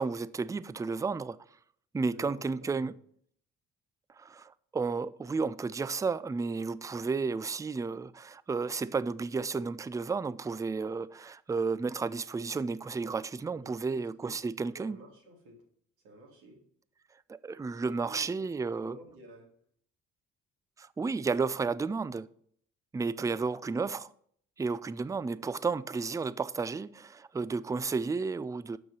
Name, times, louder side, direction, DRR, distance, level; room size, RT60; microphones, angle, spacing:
voice 1, 0.0-1.4 1.9-2.9 4.2-15.0 17.3-19.0 20.8-22.3 22.9-24.1 24.6-28.8, right 4 dB, 10° right, 0.3 m, -32 dB
voice 2, 2.1-2.9 13.5-14.3 14.7-15.6 16.0-16.6 17.9-19.5 23.1-23.3, right 1 dB, 75° right, 2.8 m, -52 dB
6.8 x 6.2 x 7.3 m
hypercardioid pair, 50°, 38 cm